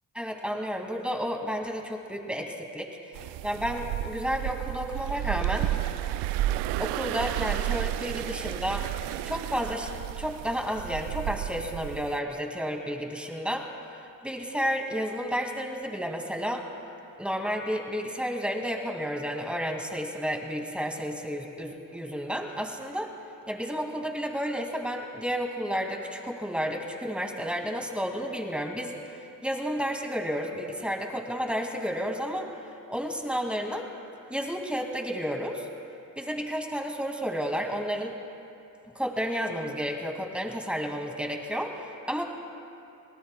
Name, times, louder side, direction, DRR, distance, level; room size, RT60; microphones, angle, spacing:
voice 1, 0.1-2.9 3.4-5.7 6.8-8.9 9.2-9.9 10.2-13.7 14.2-16.6 17.2-23.1 23.5-28.9 29.4-32.5 32.9-33.9 34.3-35.7 36.2-38.1 39.0-42.2, equal, 5° right, 3 dB, 2.2 m, -31 dB
sound 1, 3.1-12.2, right 14 dB, 70° right, 0.5 m, -32 dB
24.0 x 18.5 x 2.3 m, 2.7 s
hypercardioid pair, 45°, 43 cm